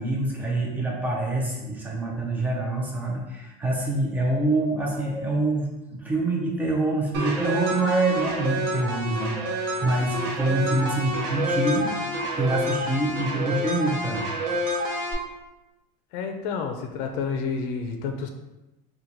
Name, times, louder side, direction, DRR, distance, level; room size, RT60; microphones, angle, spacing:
voice 1, 0.0-14.2, right 2 dB, 10° right, -2 dB, 0.5 m, -26 dB
sound 1, 7.1-15.1, right 1 dB, 60° right, 0.7 m, -28 dB
voice 2, 16.1-18.3, left 5 dB, 70° left, 4 dB, 0.5 m, -29 dB
2.9 x 2.3 x 3.8 m, 1.0 s
cardioid pair, 165°, 20 cm